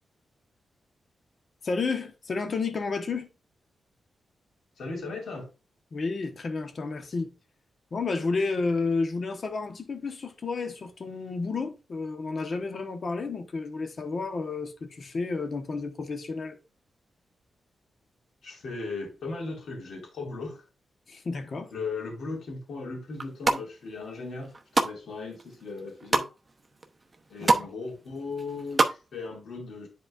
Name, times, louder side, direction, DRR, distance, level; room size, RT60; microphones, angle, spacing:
voice 1, 1.6-3.3 5.9-7.3 7.9-16.6 21.1-21.7, left 4 dB, 50° left, 1.2 m, -31 dB
voice 2, 4.8-5.5 18.4-20.6 21.7-24.5 24.8-26.3 27.3-29.9, left 3 dB, 70° left, 2.5 m, -37 dB
sound 1, 23.1-23.6 24.2-24.9 25.4-26.3 26.8-26.9 27.1-27.7 28.0-29.0 29.3-29.4, right 3 dB, 30° right, 0.9 m, -25 dB
9.9 x 4.3 x 2.5 m
cardioid pair, 90°, 0 cm